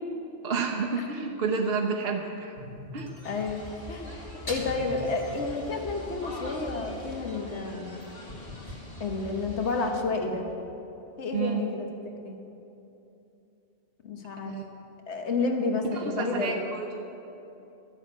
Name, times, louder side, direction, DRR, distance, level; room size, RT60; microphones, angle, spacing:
voice 1, 0.4-2.5 2.9-3.1 11.3-11.6 14.5-14.6 16.0-17.1, right 5 dB, 60° right, 2 dB, 0.9 m, -30 dB
sound 1, 2.6-8.0 8.3-8.7 9.1-10.5, left 1 dB, 35° left, 2.0 m, -43 dB
voice 2, 3.2-3.6 3.9-4.1 4.4-7.9 9.0-10.4 11.2-11.9 12.2-12.4 14.0-14.6 15.1-16.6, left 3 dB, 75° left, 3 dB, 1.5 m, -30 dB
sound 2, 3.2-9.9, left 2 dB, 55° left, 2.3 m, -43 dB
12.5 x 7.1 x 8.8 m, 2.9 s
omnidirectional pair, 1.2 m